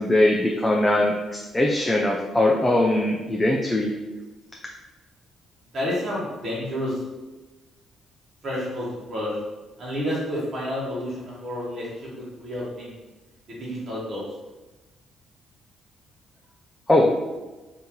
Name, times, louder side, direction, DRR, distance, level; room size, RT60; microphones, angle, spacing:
voice 1, 0.0-3.9 16.9-17.1, left 1 dB, 15° left, -1 dB, 0.4 m, -21 dB
voice 2, 5.7-7.0 8.4-9.4 9.8-13.0 13.5-14.3, left 1 dB, 45° right, -7 dB, 1.2 m, -30 dB
2.9 x 2.8 x 3.7 m, 1.1 s
cardioid pair, 90°, 0 cm